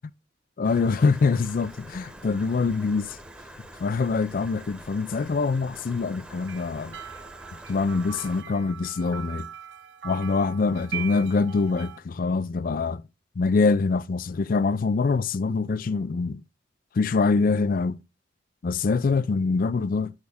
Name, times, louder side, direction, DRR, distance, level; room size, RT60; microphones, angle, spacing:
voice 1, 0.6-3.2 3.8-7.0 7.7-9.5 10.0-13.0 13.4-16.4 17.0-18.0 18.6-20.1, left 4 dB, 50° left, 0.4 m, -24 dB
Stream, 0.6-8.4, right 1 dB, 5° right, 1.0 m, -45 dB
sound 1, 6.4-12.0, right 9 dB, 85° right, 0.8 m, -40 dB
10.5 x 6.4 x 3.5 m
head